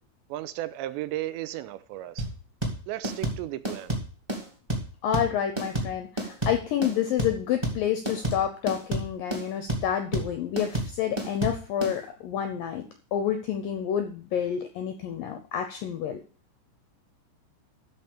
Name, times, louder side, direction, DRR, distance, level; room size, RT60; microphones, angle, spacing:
voice 1, 0.3-2.3 2.9-4.0, right 14 dB, 85° right, 2.9 m, -34 dB
sound 1, 2.2-11.9, right 1 dB, 20° right, 0.7 m, -30 dB
voice 2, 5.0-16.2, left 9 dB, 80° left, 2.0 m, -29 dB
13.0 x 4.5 x 6.9 m
omnidirectional pair, 5.1 m